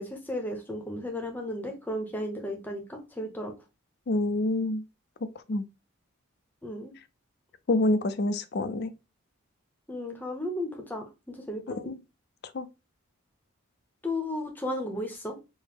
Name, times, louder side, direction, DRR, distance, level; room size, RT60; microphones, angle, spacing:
voice 1, 0.0-3.5 6.6-6.9 9.9-11.9 14.0-15.4, left 1 dB, 10° left, 0.7 m, -34 dB
voice 2, 4.1-4.8 5.5-5.6 7.7-8.9 11.7-12.0 12.5-12.7, left 2 dB, 50° left, 0.4 m, -27 dB
4.6 x 2.1 x 3.5 m
head